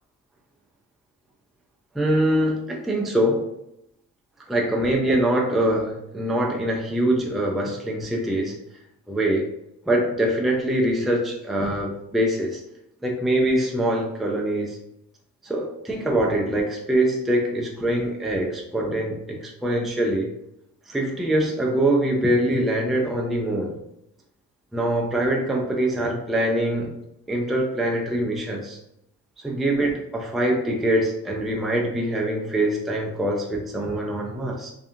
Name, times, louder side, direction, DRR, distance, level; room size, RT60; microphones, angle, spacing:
voice 1, 1.9-3.5 4.5-8.6 9.1-9.5 9.9-12.6 13.0-14.8 15.4-20.3 20.9-23.8 24.7-27.0 27.3-28.8 29.4-34.7, right 1 dB, ahead, -1 dB, 0.4 m, -23 dB
2.6 x 2.5 x 2.5 m, 0.81 s
cardioid pair, 90°, 30 cm